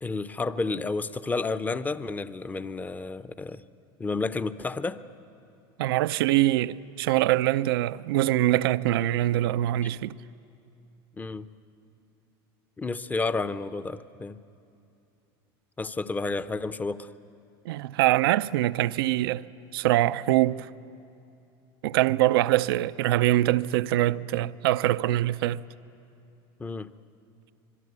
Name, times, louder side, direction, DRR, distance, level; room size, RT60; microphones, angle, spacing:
voice 1, 0.0-3.6 4.0-5.0 11.2-11.5 12.8-14.4 15.8-17.1 26.6-26.9, left 3 dB, 15° left, 0.7 m, -31 dB
voice 2, 5.8-10.1 17.6-19.4 19.7-20.7 21.8-25.6, right 15 dB, 85° right, 0.5 m, -24 dB
25.5 x 22.0 x 9.6 m
supercardioid pair, 110°, 12 cm